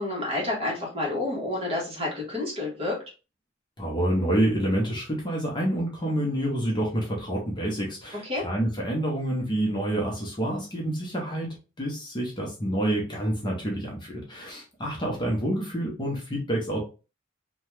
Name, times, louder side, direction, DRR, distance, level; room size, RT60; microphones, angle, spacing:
voice 1, 0.0-2.9 8.2-8.4, left 2 dB, 30° right, -3 dB, 1.2 m, -29 dB
voice 2, 3.8-16.8, right 1 dB, 25° left, -1 dB, 0.7 m, -28 dB
2.8 x 2.3 x 3.1 m, 0.32 s
head